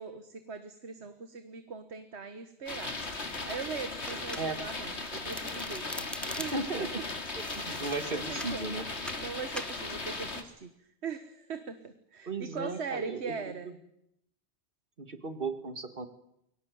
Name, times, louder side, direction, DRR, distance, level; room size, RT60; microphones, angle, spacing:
voice 1, 0.0-3.0 3.4-5.8 6.1-6.5 6.8-6.9 8.1-8.8 9.2-13.7, right 5 dB, 80° right, 10 dB, 1.7 m, -40 dB
sound 1, 2.7-10.4, left 3 dB, 85° left, 2.7 m, -37 dB
Domestic sounds home sounds, 4.1-4.8 5.1-6.8 7.4-8.6 9.1-9.3 9.6-9.8, equal, ahead, 0.9 m, -42 dB
voice 2, 6.5-6.9 7.4-8.9 12.3-13.7 15.0-16.1, right 3 dB, 55° right, 10 dB, 2.2 m, -36 dB
22.5 x 18.5 x 9.4 m, 0.79 s
omnidirectional pair, 1.1 m